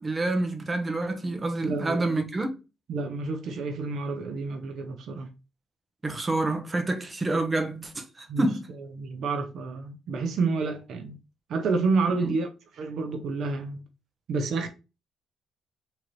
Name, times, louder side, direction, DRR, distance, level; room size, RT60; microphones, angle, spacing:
voice 1, 0.0-2.5 6.0-8.7 12.2-12.3, right 2 dB, 25° right, 0.9 m, -28 dB
voice 2, 1.6-2.0 2.9-5.3 8.3-8.5 8.9-11.2 11.5-12.5 12.8-13.8 14.3-14.7, right 4 dB, 70° right, 0.6 m, -29 dB
3.8 x 2.9 x 3.1 m
cardioid pair, 90°, 0 cm